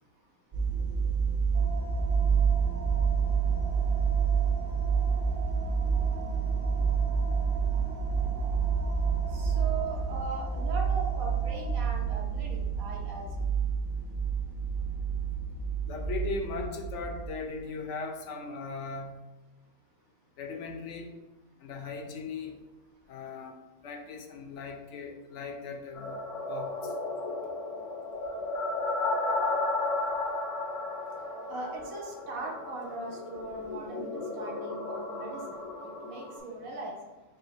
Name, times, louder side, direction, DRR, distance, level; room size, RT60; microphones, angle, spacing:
sound 1, 0.5-17.3, right 6 dB, 35° right, 1.2 m, -28 dB
sound 2, 1.5-11.7, right 2 dB, 55° right, 0.6 m, -44 dB
voice 1, 9.3-13.4 31.5-35.4 35.8-36.9, right 3 dB, 75° right, -1 dB, 1.2 m, -39 dB
voice 2, 15.8-19.2 20.4-21.1 21.6-22.5 23.1-23.5 23.8-26.9, left 4 dB, 65° left, 4 dB, 0.8 m, -38 dB
sound 3, 25.9-36.4, left 2 dB, 30° left, 0.7 m, -34 dB
4.8 x 2.1 x 4.6 m, 1.2 s
omnidirectional pair, 1.5 m